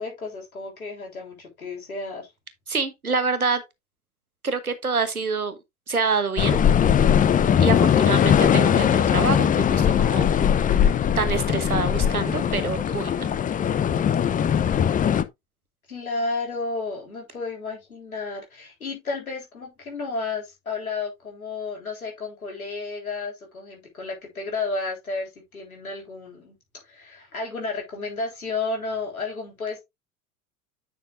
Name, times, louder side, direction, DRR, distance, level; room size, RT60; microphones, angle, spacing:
voice 1, 0.0-2.3 7.9-8.1 15.9-26.6 26.8-29.8, left 3 dB, 80° left, 3.6 m, -32 dB
voice 2, 2.7-3.6 4.4-5.6 5.9-6.6 7.6-10.3 10.6-13.3, right 4 dB, 90° right, 1.2 m, -26 dB
sound 1, 6.4-15.2, left 8 dB, 20° left, 0.6 m, -20 dB
9.4 x 6.0 x 2.5 m
figure-of-eight pair, 75°, 42 cm